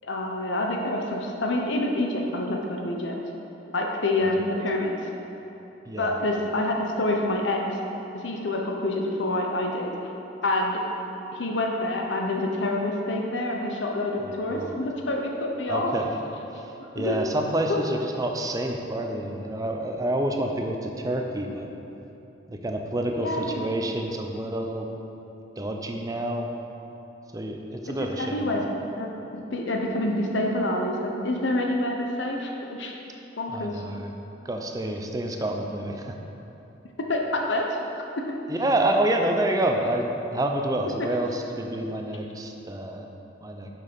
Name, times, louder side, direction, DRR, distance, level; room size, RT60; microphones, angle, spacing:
voice 1, 0.0-3.1 3.7-4.9 6.0-7.6 8.1-9.9 10.4-10.8 11.3-15.9 16.9-17.2 23.2-23.7 27.9-28.6 29.0-29.1 29.5-32.9 33.4-33.8 37.1-37.7, left 1 dB, 85° left, 1 dB, 0.8 m, -27 dB
voice 2, 5.9-6.2 14.5-14.8 15.7-16.2 16.9-21.7 22.5-24.9 25.6-26.5 27.3-28.4 33.5-34.1 34.5-36.2 38.5-43.1 43.4-43.7, right 1 dB, 20° right, 3 dB, 0.5 m, -28 dB
6.4 x 6.0 x 5.3 m, 3.0 s
head